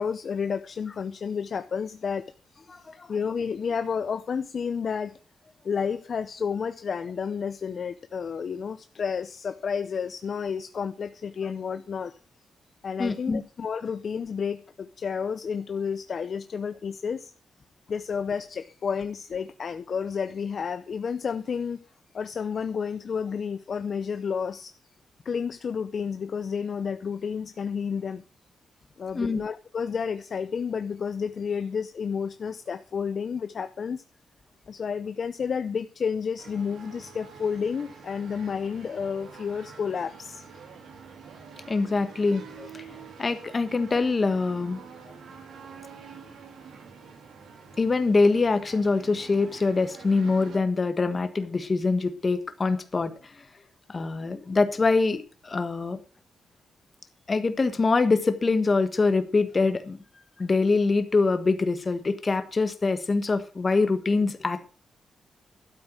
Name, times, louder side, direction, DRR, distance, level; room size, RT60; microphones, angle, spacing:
voice 1, 0.0-2.2 2.5-2.8 3.1-5.2 5.6-12.2 12.8-17.3 17.9-21.8 22.1-24.7 25.2-28.2 29.0-34.0 34.7-40.4, left 6 dB, 50° left, 10 dB, 0.6 m, -31 dB
voice 2, 2.7-3.1 13.0-13.4 29.1-29.4 41.7-44.8 47.8-53.5 53.9-56.0 57.3-60.0 60.4-64.7, left 3 dB, 30° left, 10 dB, 1.5 m, -24 dB
sound 1, 36.4-50.6, right 5 dB, 80° right, 3.2 m, -47 dB
12.5 x 8.2 x 6.1 m, 0.36 s
wide cardioid pair, 135°, 0 cm